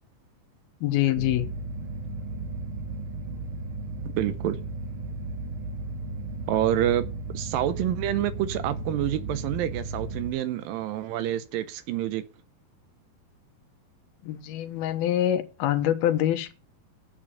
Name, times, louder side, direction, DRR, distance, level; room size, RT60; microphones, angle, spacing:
voice 1, 0.8-1.5 14.2-16.5, left 12 dB, 80° left, 2.9 m, -25 dB
sound 1, 1.1-10.3, right 2 dB, 50° right, 1.7 m, -35 dB
voice 2, 4.2-4.6 6.5-7.1 7.3-12.2, right 12 dB, 80° right, 2.3 m, -27 dB
8.7 x 8.5 x 6.9 m
omnidirectional pair, 4.4 m